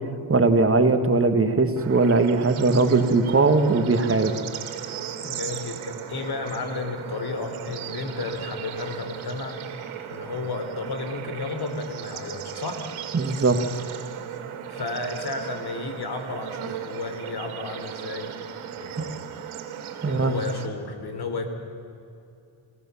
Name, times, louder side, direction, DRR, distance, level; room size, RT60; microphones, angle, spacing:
voice 1, 0.3-4.3 13.1-13.6 19.0-19.1 20.0-20.3, right 3 dB, 25° right, 7 dB, 1.6 m, -20 dB
Bird / Insect / Frog, 1.8-20.7, right 9 dB, 85° right, 2.4 m, -36 dB
voice 2, 5.2-9.6 10.1-12.9 14.6-18.3 18.8-19.2 20.1-21.5, left 3 dB, 50° left, 7 dB, 3.6 m, -33 dB
28.5 x 17.0 x 7.1 m, 2.6 s
cardioid pair, 85°, 48 cm